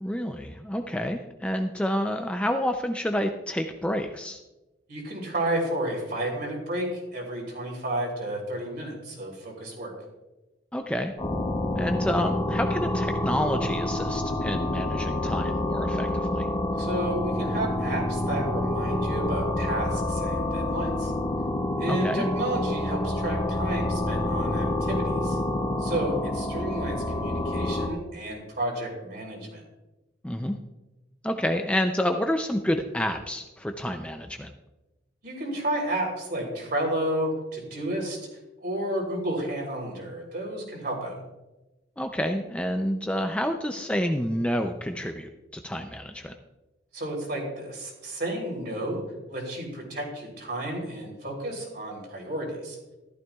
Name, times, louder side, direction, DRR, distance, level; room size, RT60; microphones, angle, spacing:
voice 1, 0.0-4.4 10.7-11.1 11.8-16.5 21.9-22.2 30.2-30.6 31.2-34.5 42.0-45.3 45.6-46.3, equal, 5° left, 5 dB, 0.4 m, -28 dB
voice 2, 4.9-9.9 16.8-21.1 21.8-25.4 25.8-29.6 35.2-38.2 38.6-41.2 46.9-49.0 49.3-52.8, right 1 dB, 50° right, -1 dB, 3.4 m, -31 dB
sound 1, 11.2-27.9, left 1 dB, 20° left, 1.6 m, -28 dB
14.0 x 12.0 x 2.3 m, 1.1 s
head